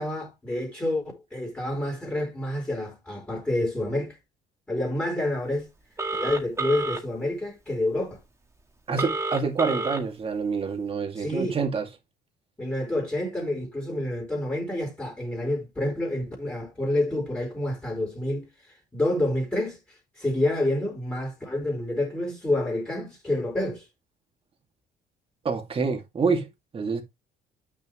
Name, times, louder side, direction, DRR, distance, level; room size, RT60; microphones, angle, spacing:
voice 1, 0.0-4.2 4.7-5.7 6.2-8.2 11.2-11.5 12.6-18.5 18.9-23.9, left 1 dB, 10° left, 3.9 m, -28 dB
Telephone, 6.0-7.0 9.0-10.0, right 2 dB, 15° right, 2.0 m, -29 dB
voice 2, 8.9-11.9 25.4-27.0, right 4 dB, 35° right, 2.3 m, -27 dB
8.8 x 6.4 x 3.1 m
cardioid pair, 110°, 17 cm